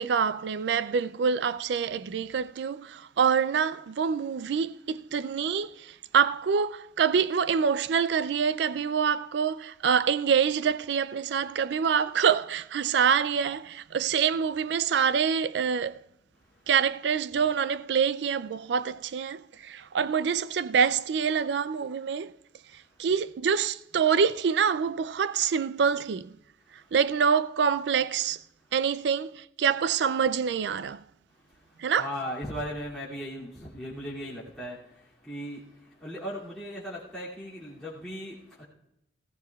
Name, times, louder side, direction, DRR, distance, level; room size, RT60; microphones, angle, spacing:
voice 1, 0.0-16.0 16.7-22.3 23.0-26.3 26.9-28.4 28.7-31.0 31.8-32.1, right 6 dB, 70° right, 0.3 m, -26 dB
voice 2, 31.4-38.6, equal, ahead, 2.5 m, -38 dB
19.5 x 15.0 x 2.3 m
head